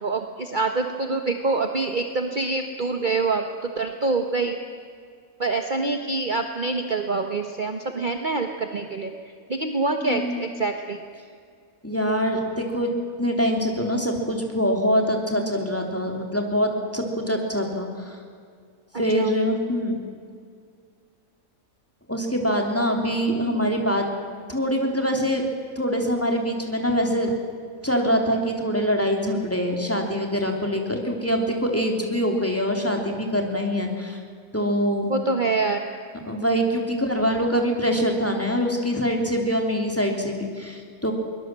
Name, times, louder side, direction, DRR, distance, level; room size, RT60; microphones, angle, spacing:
voice 1, 0.0-4.6 5.4-9.1 9.5-11.0 19.2-19.3 35.1-35.8, right 3 dB, 35° right, 5 dB, 1.3 m, -25 dB
voice 2, 10.0-10.5 11.8-12.9 13.2-18.2 19.0-20.0 22.1-24.1 24.5-25.4 25.7-27.3 27.8-34.2 34.5-35.1 36.2-41.1, equal, 10° left, 2 dB, 3.2 m, -24 dB
22.5 x 20.5 x 7.6 m, 2.2 s
omnidirectional pair, 1.5 m